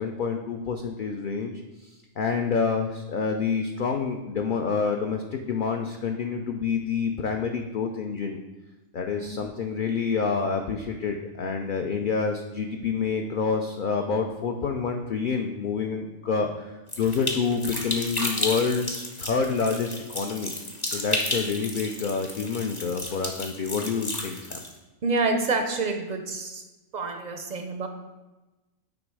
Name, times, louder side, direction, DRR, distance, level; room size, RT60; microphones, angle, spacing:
voice 1, 0.0-1.5 1.8-8.4 8.9-16.7 17.0-20.5 20.9-24.6, left 5 dB, 70° left, 3 dB, 0.4 m, -28 dB
voice 2, 9.1-9.4 25.0-26.7 26.9-27.9, right 3 dB, 55° right, 5 dB, 0.4 m, -28 dB
sound 1, 16.9-24.7, left 1 dB, 25° left, 0.6 m, -32 dB
9.0 x 3.0 x 4.7 m, 1.1 s
omnidirectional pair, 1.4 m